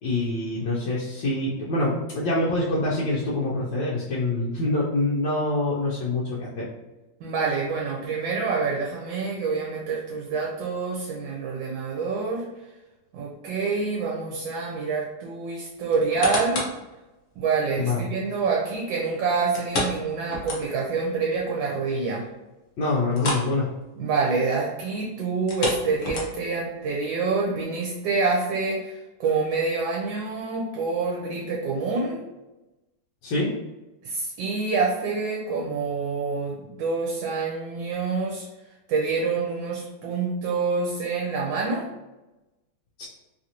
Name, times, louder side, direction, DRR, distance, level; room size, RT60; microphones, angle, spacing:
voice 1, 0.0-6.6 17.8-18.0 22.8-23.7 33.2-33.5 43.0-43.1, left 2 dB, 80° left, -7 dB, 1.3 m, -25 dB
voice 2, 7.2-12.5 13.1-16.7 17.4-22.3 24.0-32.2 34.0-38.5 38.9-41.9, right 4 dB, 80° right, -2 dB, 1.3 m, -27 dB
sound 1, 15.9-16.8 17.3-17.4 19.5-21.0 21.3-21.4 21.9-22.0 23.1-23.5 23.8-24.0 25.3-26.6 27.2-27.3, left 2 dB, 55° left, 0.9 m, -30 dB
3.4 x 2.5 x 2.8 m, 1.0 s
omnidirectional pair, 2.1 m